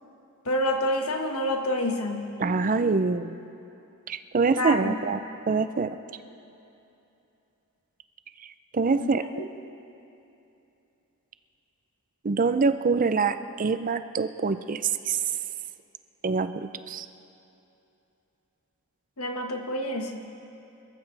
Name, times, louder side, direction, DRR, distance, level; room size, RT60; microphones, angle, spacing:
voice 1, 0.4-2.3 4.6-4.9 9.0-9.4 19.2-20.3, left 1 dB, 80° left, 3 dB, 1.5 m, -28 dB
voice 2, 2.4-3.4 4.1-5.2 5.5-6.0 8.7-9.2 12.2-15.2 16.2-17.1, right 4 dB, 40° right, 11 dB, 0.5 m, -25 dB
26.0 x 14.0 x 3.4 m, 2.8 s
head